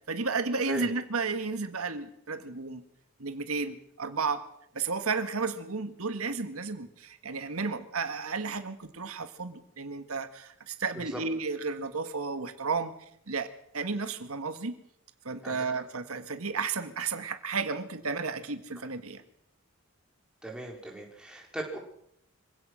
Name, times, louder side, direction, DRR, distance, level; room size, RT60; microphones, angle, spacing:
voice 1, 0.1-2.8 3.2-4.5 4.8-12.9 13.3-13.5 13.7-14.8 15.3-19.2, right 4 dB, 85° right, 8 dB, 1.8 m, -33 dB
voice 2, 15.4-15.8 20.4-21.8, right 1 dB, 5° right, -1 dB, 4.7 m, -38 dB
25.5 x 16.5 x 6.4 m, 0.73 s
head